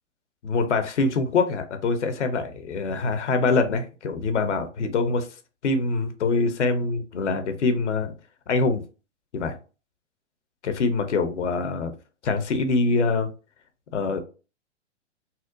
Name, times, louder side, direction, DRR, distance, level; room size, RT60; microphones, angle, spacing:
voice 1, 0.4-5.3 5.6-8.1 8.5-8.8 9.3-9.6 10.6-11.9 12.2-13.3 13.9-14.2, left 3 dB, 75° left, 0.8 m, -24 dB
4.2 x 2.1 x 2.5 m
hypercardioid pair, 115°, 35 cm